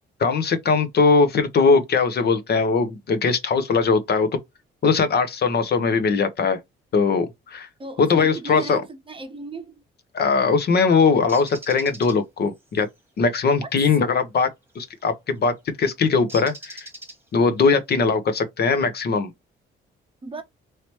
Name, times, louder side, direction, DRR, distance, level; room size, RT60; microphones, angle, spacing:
voice 1, 0.2-4.3 4.8-6.6 6.9-7.7 8.0-8.8 10.1-12.9 13.2-14.5 14.7-15.5 15.8-16.9 17.3-19.3, left 4 dB, 55° left, 0.9 m, -20 dB
voice 2, 7.8-9.7 13.6-13.7 20.2-20.4, right 3 dB, 25° right, 0.7 m, -36 dB
Bird, 11.3-12.2 14.8-15.0 16.3-17.5, right 2 dB, 10° right, 1.3 m, -40 dB
3.2 x 2.8 x 3.0 m
cardioid pair, 90°, 20 cm